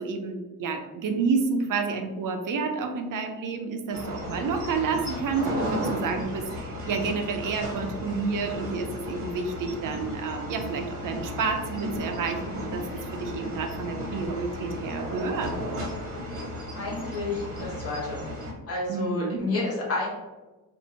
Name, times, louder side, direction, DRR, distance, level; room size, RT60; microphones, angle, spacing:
voice 1, 0.0-12.9 13.1-15.6 18.9-19.4, right 4 dB, 60° right, 5 dB, 0.5 m, -29 dB
sound 1, 3.9-18.5, equal, 35° right, 0.9 m, -35 dB
voice 2, 16.7-18.2 18.7-20.1, left 2 dB, 40° left, -4 dB, 1.1 m, -30 dB
2.7 x 2.5 x 4.2 m, 1.1 s
wide cardioid pair, 180°, 38 cm